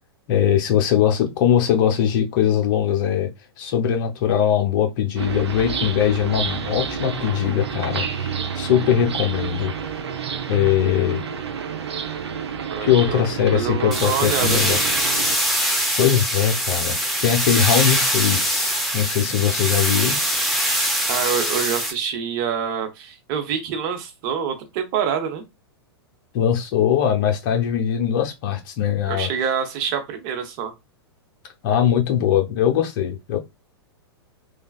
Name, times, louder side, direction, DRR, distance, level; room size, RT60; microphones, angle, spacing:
voice 1, 0.3-3.3 3.6-9.7 10.5-11.2 12.8-14.8 16.0-20.2 26.3-29.3 31.6-33.4, left 9 dB, 50° left, 0.7 m, -21 dB
sound 1, 5.2-15.4, right 6 dB, 75° right, 0.6 m, -29 dB
voice 2, 12.7-14.8 21.1-25.4 29.1-30.7, right 7 dB, 45° right, 0.8 m, -26 dB
sound 2, 13.9-21.9, equal, ahead, 0.7 m, -23 dB
3.2 x 2.3 x 2.3 m
hypercardioid pair, 105°, 14 cm